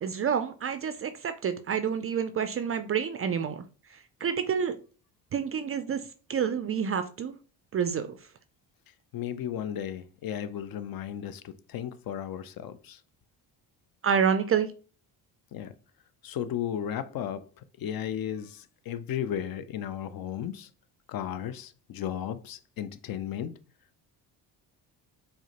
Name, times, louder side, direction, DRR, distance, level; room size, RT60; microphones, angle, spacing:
voice 1, 0.0-3.6 4.2-4.7 5.3-6.0 6.3-7.3 7.7-8.2 14.0-14.7, right 7 dB, 30° right, 0.3 m, -28 dB
voice 2, 9.1-13.0 15.5-15.7 16.2-20.7 21.1-23.6, left 10 dB, 50° left, 0.5 m, -35 dB
4.6 x 2.1 x 2.8 m
supercardioid pair, 60°, 48 cm